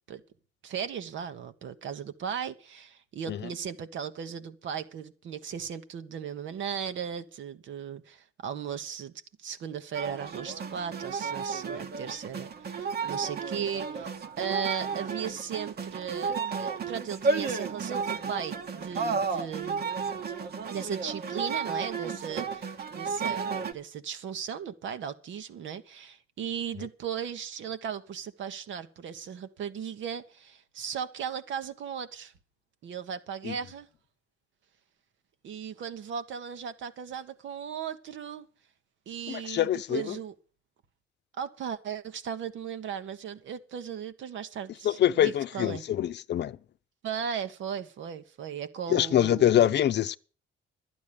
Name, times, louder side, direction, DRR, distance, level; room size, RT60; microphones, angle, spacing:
voice 1, 0.6-19.9 20.7-32.3 32.8-33.9 35.4-38.5 39.1-40.3 41.4-45.8 47.0-49.8, right 8 dB, 70° right, 1.2 m, -37 dB
sound 1, 9.9-23.7, right 5 dB, 55° right, 1.3 m, -33 dB
voice 2, 39.3-40.2 44.8-46.6 48.9-50.2, left 11 dB, 60° left, 0.6 m, -25 dB
12.0 x 9.3 x 6.9 m
cardioid pair, 90°, 20 cm